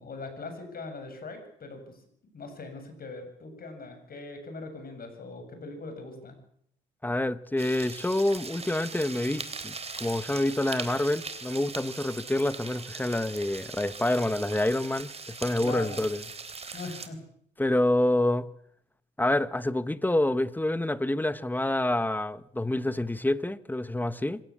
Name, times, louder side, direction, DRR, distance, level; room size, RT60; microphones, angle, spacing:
voice 1, 0.0-2.0 2.3-6.4 15.6-16.0 16.7-17.2, left 3 dB, 50° left, 7.9 m, -41 dB
voice 2, 7.0-9.7 10.0-16.2 17.6-18.5 19.2-24.4, left 1 dB, 10° left, 1.2 m, -27 dB
sound 1, 7.6-17.1, right 4 dB, 30° right, 3.5 m, -40 dB
25.5 x 17.0 x 8.7 m
cardioid pair, 90°, 20 cm